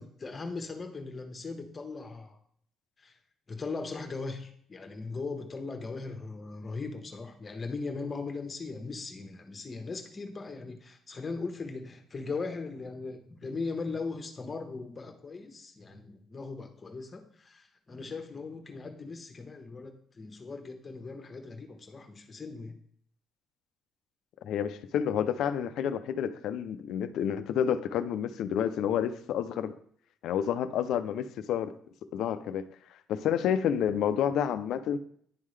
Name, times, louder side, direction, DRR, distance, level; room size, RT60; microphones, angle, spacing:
voice 1, 0.0-2.4 3.0-3.2 3.5-22.8, left 4 dB, 30° left, 5 dB, 1.2 m, -39 dB
voice 2, 24.4-29.7 30.2-31.7 32.1-32.7 33.1-35.0, left 9 dB, 75° left, 11 dB, 0.5 m, -29 dB
10.5 x 3.7 x 3.3 m, 0.63 s
cardioid pair, 85°, 0 cm